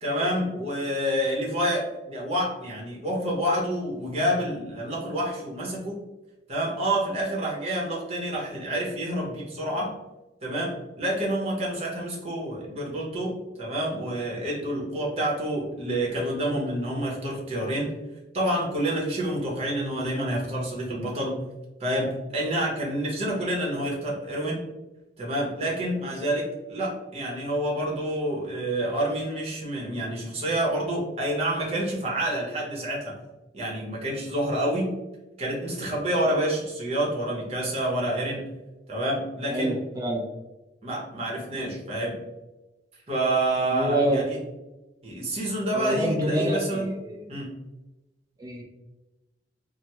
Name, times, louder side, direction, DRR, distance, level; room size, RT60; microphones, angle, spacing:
voice 1, 0.0-6.0 6.5-9.9 10.4-17.9 18.3-21.3 21.8-24.6 25.2-33.2 33.5-34.9 35.4-38.4 38.9-39.8 40.8-42.2 43.1-44.4 45.0-46.9 47.3-47.5, right 1 dB, 35° right, -3 dB, 0.8 m, -28 dB
voice 2, 39.5-40.2 43.7-44.3 45.7-47.4 48.4-48.6, right 1 dB, 20° right, 0 dB, 0.4 m, -27 dB
3.3 x 2.0 x 2.9 m, 1.0 s
head